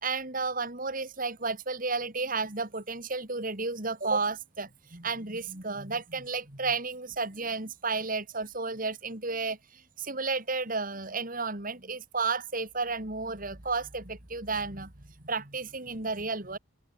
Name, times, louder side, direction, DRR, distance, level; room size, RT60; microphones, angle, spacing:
voice 1, 0.0-16.6, right 4 dB, 40° right, 3.0 m, -32 dB
open air
head